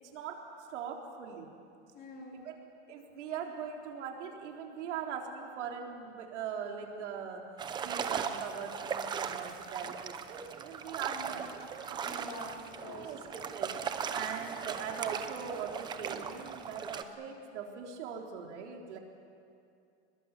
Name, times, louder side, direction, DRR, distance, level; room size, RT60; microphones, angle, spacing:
voice 1, 0.1-0.4 0.7-1.5 2.3-2.5 2.9-7.4 7.7-11.5 13.0-19.0, right 7 dB, 80° right, 1 dB, 3.8 m, -41 dB
voice 2, 1.9-2.4 11.1-11.5 12.0-13.1, left 2 dB, 25° left, -1 dB, 4.1 m, -46 dB
sound 1, 7.6-17.0, right 7 dB, 15° right, 0.6 m, -38 dB
Sliding door, 11.5-16.9, right 6 dB, 45° right, 3.0 m, -51 dB
27.0 x 21.0 x 7.4 m, 2.5 s
supercardioid pair, 170°, 35 cm